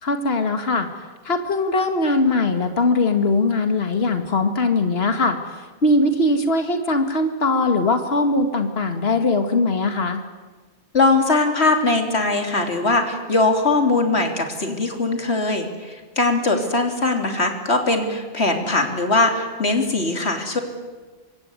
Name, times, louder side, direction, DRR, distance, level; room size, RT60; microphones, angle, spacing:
voice 1, 0.0-10.2, left 2 dB, 70° left, 7 dB, 2.1 m, -21 dB
voice 2, 10.9-20.6, left 2 dB, 90° left, 4 dB, 3.8 m, -20 dB
25.5 x 24.0 x 9.7 m, 1.3 s
omnidirectional pair, 1.1 m